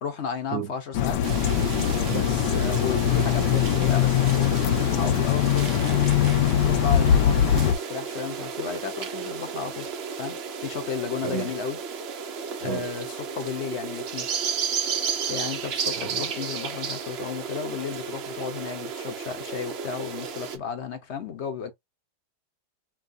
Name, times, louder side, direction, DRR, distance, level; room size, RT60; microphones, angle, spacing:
voice 1, 0.0-1.2 2.0-6.0 6.6-9.9 10.2-11.8 12.6-14.3 15.3-21.7, left 7 dB, 50° left, 0.9 m, -33 dB
voice 2, 0.5-0.7 2.1-2.2 11.2-11.5 12.6-12.9 16.0-16.2, right 7 dB, 50° right, 0.9 m, -31 dB
sound 1, 0.9-7.7, left 10 dB, 70° left, 1.2 m, -22 dB
sound 2, 1.2-20.6, right 6 dB, 70° right, 0.6 m, -33 dB
5.2 x 2.8 x 2.7 m
omnidirectional pair, 2.0 m